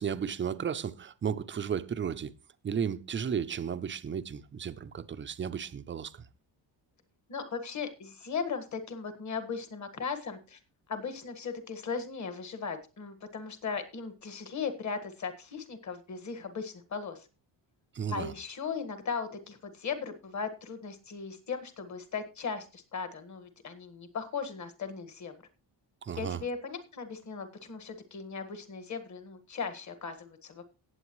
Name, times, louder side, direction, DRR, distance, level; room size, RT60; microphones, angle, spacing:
voice 1, 0.0-2.3 2.6-6.3 17.9-18.3 26.0-26.4, right 7 dB, 25° right, 0.5 m, -34 dB
voice 2, 7.3-10.6 10.9-17.3 18.1-25.3 26.2-30.7, left 5 dB, 40° left, 1.6 m, -37 dB
17.5 x 8.0 x 3.1 m
cardioid pair, 160°, 45 cm